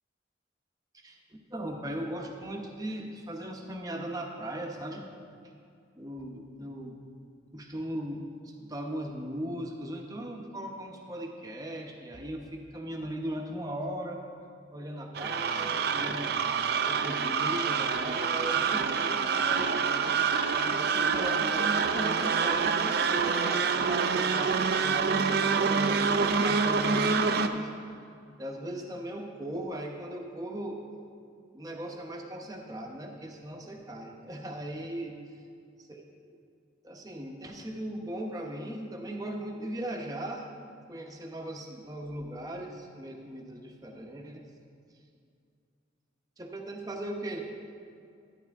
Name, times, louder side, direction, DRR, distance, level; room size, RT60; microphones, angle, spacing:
voice 1, 0.9-5.1 6.0-7.0 7.5-14.2 14.7-16.4 16.8-19.9 20.6-27.7 28.4-30.8 31.5-35.2 35.9-36.2 36.8-40.5 40.9-44.4 46.4-47.4, right 1 dB, 20° right, 2 dB, 0.9 m, -38 dB
sound 1, 15.1-27.5, right 5 dB, 55° right, 0.5 m, -27 dB
12.0 x 10.0 x 3.5 m, 2.4 s
head